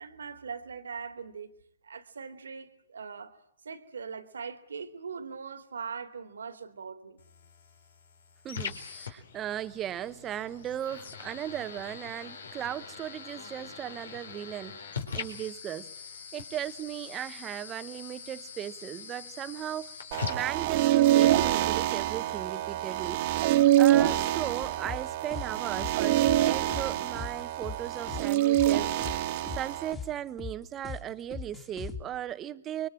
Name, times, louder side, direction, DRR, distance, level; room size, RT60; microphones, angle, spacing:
voice 1, 0.0-1.5 1.8-3.4 3.6-7.2, right 6 dB, 80° right, 2.6 m, -41 dB
sound 1, 7.2-21.2, left 6 dB, 80° left, 4.5 m, -42 dB
voice 2, 8.4-14.8 15.1-15.9 16.3-19.9 20.3-23.2 23.8-29.2 29.5-32.9, right 11 dB, 20° right, 1.1 m, -37 dB
sound 2, 20.1-29.9, right 13 dB, 40° right, 1.7 m, -25 dB
sound 3, 24.6-32.0, left 5 dB, 15° left, 2.5 m, -40 dB
28.0 x 23.5 x 7.7 m
hypercardioid pair, 140°, 0 cm